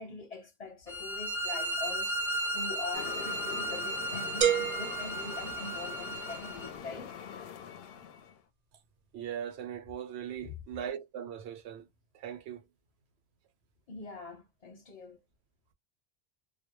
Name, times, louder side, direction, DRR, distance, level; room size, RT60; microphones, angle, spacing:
voice 1, 0.0-7.1 10.4-10.6 13.9-15.2, left 3 dB, 40° left, 0.8 m, -43 dB
sound 1, 0.9-6.7, right 1 dB, 5° left, 0.5 m, -35 dB
sound 2, 2.9-8.4, left 8 dB, 70° left, 0.7 m, -43 dB
sound 3, 4.4-6.3, right 9 dB, 50° right, 0.5 m, -31 dB
voice 2, 9.1-11.9 12.1-12.6, right 9 dB, 80° right, 0.9 m, -39 dB
2.2 x 2.0 x 2.9 m
omnidirectional pair, 1.1 m